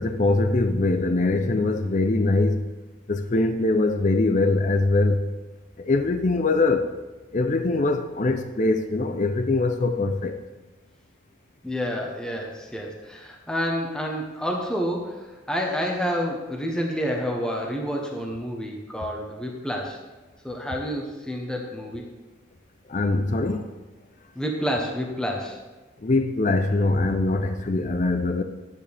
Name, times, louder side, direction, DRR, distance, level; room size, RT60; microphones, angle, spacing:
voice 1, 0.0-2.6 3.1-5.2 5.8-6.9 7.3-10.4 22.9-23.7 26.0-28.4, left 2 dB, 40° left, 0.5 m, -22 dB
voice 2, 11.6-20.0 20.4-22.1 24.3-25.6, equal, 5° left, 1.1 m, -29 dB
12.5 x 9.5 x 3.5 m
head